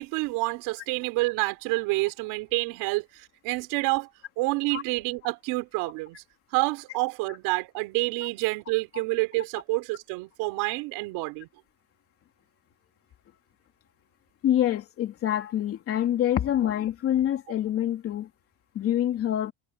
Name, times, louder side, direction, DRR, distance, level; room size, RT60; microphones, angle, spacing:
voice 1, 0.0-4.1 4.4-6.2 6.5-11.5, right 24 dB, 70° right, 4.0 m, -28 dB
voice 2, 14.4-18.3 18.7-19.5, left 11 dB, 35° left, 3.0 m, -26 dB
cardioid pair, 180°, 39 cm